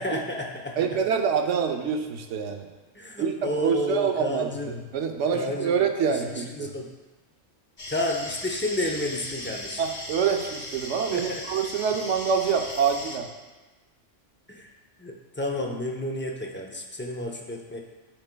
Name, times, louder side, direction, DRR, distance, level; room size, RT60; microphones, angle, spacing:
voice 1, 0.0-0.8 2.9-4.8 5.3-5.8 6.1-6.9 7.9-9.8 11.1-11.4 14.5-14.7 15.0-17.8, left 1 dB, 20° left, -1 dB, 0.3 m, -31 dB
voice 2, 0.8-2.7 3.2-6.8 9.8-13.3, right 6 dB, 75° right, 5 dB, 1.0 m, -26 dB
sound 1, 7.8-13.2, left 1 dB, 35° left, 0.8 m, -38 dB
12.0 x 4.5 x 2.2 m, 1.2 s
omnidirectional pair, 1.3 m